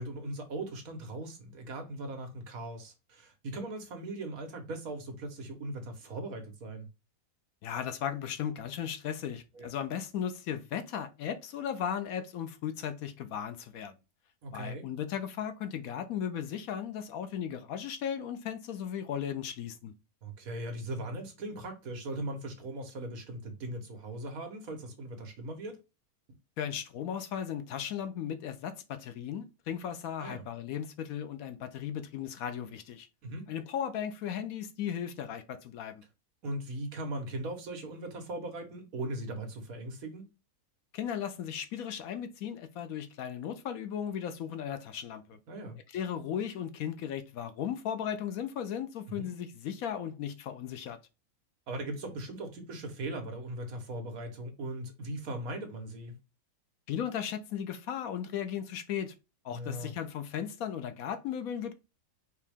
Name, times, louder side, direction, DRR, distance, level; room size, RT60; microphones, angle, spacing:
voice 1, 0.0-6.9 9.5-9.7 14.4-14.8 20.2-25.8 30.2-30.4 33.2-33.5 36.4-40.2 45.5-45.8 49.1-49.3 51.7-56.1 59.5-59.9, right 1 dB, 65° right, 1.5 m, -39 dB
voice 2, 7.6-13.9 14.5-19.9 26.6-33.1 33.5-35.9 40.9-45.4 45.9-51.0 56.9-59.1 59.4-61.7, left 9 dB, 70° left, 1.0 m, -36 dB
4.6 x 3.0 x 3.4 m
omnidirectional pair, 1.6 m